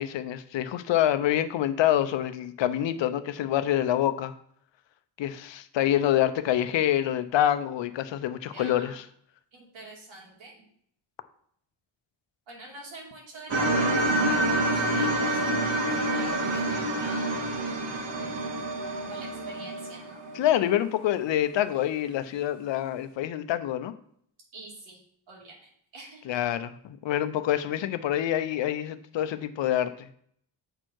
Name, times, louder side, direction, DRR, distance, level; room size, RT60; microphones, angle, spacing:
voice 1, 0.0-4.3 5.2-9.0 20.3-23.9 26.2-30.1, left 12 dB, 75° left, 11 dB, 0.7 m, -26 dB
voice 2, 8.5-9.0 9.5-10.6 12.5-15.6 15.9-17.4 19.0-20.2 24.5-25.0 25.3-25.5 25.9-26.4, right 2 dB, 90° right, -2 dB, 2.8 m, -46 dB
sound 1, 13.5-20.7, right 1 dB, 65° right, 1.6 m, -27 dB
7.7 x 4.5 x 4.5 m, 0.65 s
cardioid pair, 130°, 45 cm